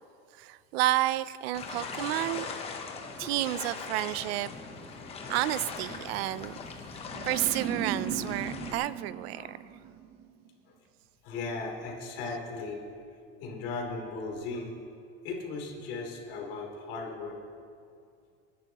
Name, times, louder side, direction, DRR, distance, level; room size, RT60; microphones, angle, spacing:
voice 1, 0.4-2.5 3.2-4.5 5.3-6.5 7.2-9.6, right 16 dB, 80° right, 17 dB, 0.5 m, -30 dB
sound 1, 1.5-8.7, left 4 dB, 20° left, 0.9 m, -40 dB
voice 2, 4.9-5.3 6.0-6.4 8.1-8.2 8.7-8.8 9.3-9.5 11.2-12.8 13.3-14.7 15.2-17.4, left 3 dB, 65° left, -1 dB, 3.3 m, -38 dB
sound 2, 7.1-10.3, right 7 dB, 40° right, 0.9 m, -37 dB
24.0 x 11.0 x 3.0 m, 2.4 s
cardioid pair, 170°, 30 cm